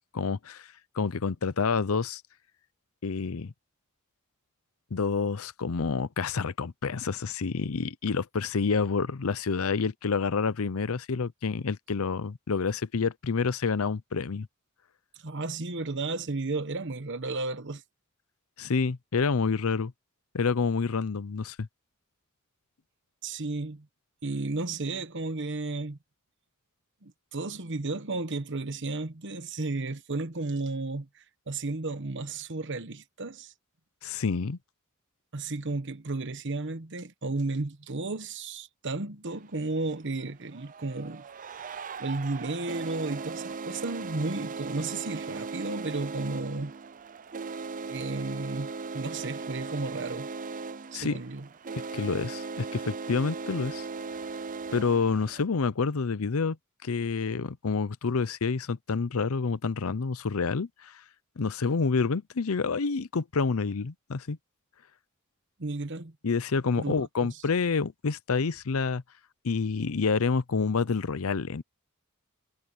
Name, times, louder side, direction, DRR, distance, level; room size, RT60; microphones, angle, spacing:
voice 1, 0.1-0.7 1.0-2.2 3.0-3.5 4.9-14.5 18.6-19.9 20.3-21.7 34.0-34.6 50.9-51.2 51.9-53.8 54.7-56.6 56.8-60.9 61.4-64.4 66.2-69.0 69.4-71.6, left 4 dB, 70° left, 0.6 m, -28 dB
voice 2, 15.2-17.8 23.2-23.9 24.2-26.0 27.0-33.5 35.3-41.2 42.0-46.7 47.8-50.3 50.9-51.5 65.6-66.1 66.8-67.4, right 3 dB, 55° right, 1.2 m, -33 dB
sound 1, 39.3-39.4 40.4-55.4, right 4 dB, 35° right, 0.5 m, -38 dB
head